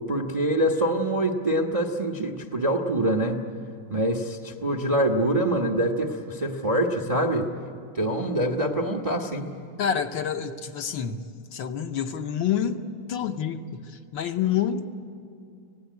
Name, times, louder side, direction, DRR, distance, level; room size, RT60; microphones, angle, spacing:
voice 1, 0.0-3.4 3.9-7.5 7.9-9.5, right 1 dB, 30° right, 3 dB, 0.7 m, -25 dB
voice 2, 9.8-12.8 13.1-14.9, left 8 dB, 65° left, 6 dB, 1.5 m, -28 dB
26.5 x 18.0 x 9.3 m, 2.3 s
omnidirectional pair, 2.4 m